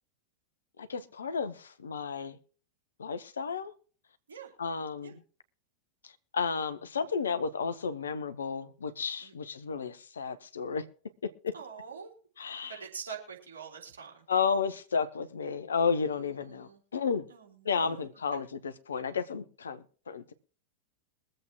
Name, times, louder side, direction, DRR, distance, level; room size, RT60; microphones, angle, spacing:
voice 1, 0.8-2.4 3.0-3.7 4.6-5.2 6.0-10.8 11.2-11.5 12.4-12.8 14.3-17.2 17.6-20.3, left 5 dB, 70° left, 1.0 m, -32 dB
voice 2, 11.5-12.1 12.7-14.2 16.4-16.8 17.3-18.1, right 6 dB, 70° right, 3.5 m, -45 dB
22.5 x 7.8 x 2.9 m
figure-of-eight pair, 90°, 0 cm